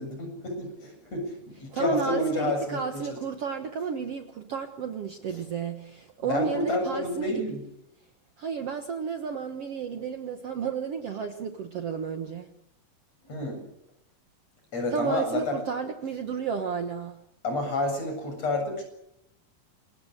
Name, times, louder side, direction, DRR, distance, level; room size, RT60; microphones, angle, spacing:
voice 1, 0.0-3.2 6.3-7.6 13.2-13.6 14.7-15.6 17.4-18.8, left 2 dB, 50° left, 4 dB, 8.8 m, -29 dB
voice 2, 1.7-7.4 8.4-12.5 14.9-17.2, right 6 dB, 55° right, 6 dB, 2.1 m, -32 dB
27.0 x 22.0 x 6.7 m, 0.80 s
omnidirectional pair, 3.8 m